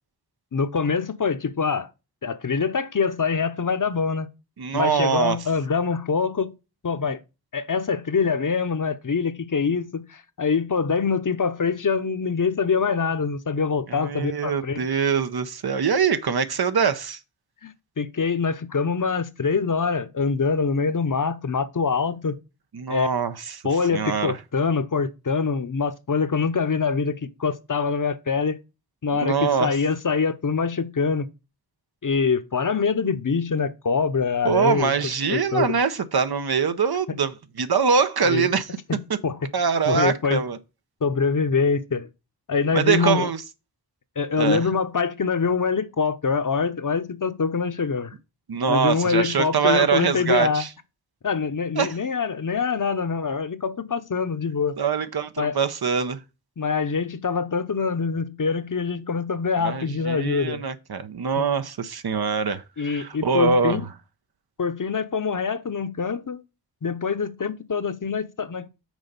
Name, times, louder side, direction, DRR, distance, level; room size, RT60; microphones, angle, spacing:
voice 1, 0.5-1.9 2.2-4.3 4.7-6.5 6.8-7.2 7.5-14.8 17.6-22.4 22.9-23.1 23.6-28.6 29.0-31.3 32.0-34.9 35.3-35.7 37.1-37.2 38.3-38.5 38.9-39.4 39.9-40.4 41.0-42.1 42.5-43.3 44.2-48.1 48.7-50.6 51.2-54.7 55.4-55.5 56.6-60.6 61.4-61.5 62.8-63.8 64.6-66.4 66.8-68.7, left 5 dB, 50° left, 0.8 m, -24 dB
voice 2, 4.6-5.4 13.9-17.2 22.7-23.6 23.9-24.4 29.1-29.7 34.4-38.7 39.5-40.6 42.7-43.4 44.4-44.7 48.5-50.7 51.8-51.9 54.8-56.2 59.6-63.8, right 6 dB, 70° right, 0.8 m, -23 dB
6.2 x 4.3 x 5.3 m
wide cardioid pair, 55°, 39 cm